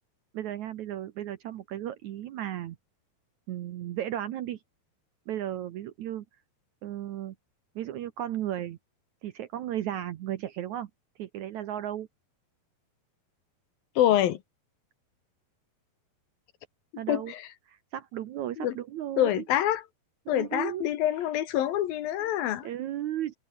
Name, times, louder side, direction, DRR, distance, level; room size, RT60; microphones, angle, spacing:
voice 1, 0.3-2.8 3.5-4.6 5.3-6.3 6.8-7.4 7.8-8.8 9.2-10.9 11.2-12.1 17.0-17.3 17.7-19.4 20.3-20.9 22.2-22.3 22.6-23.3, right 12 dB, 70° right, 1.9 m, -35 dB
voice 2, 14.0-14.4 17.1-17.5 18.6-18.8 19.2-19.8 20.3-22.7, left 12 dB, 75° left, 3.1 m, -26 dB
open air
omnidirectional pair, 4.3 m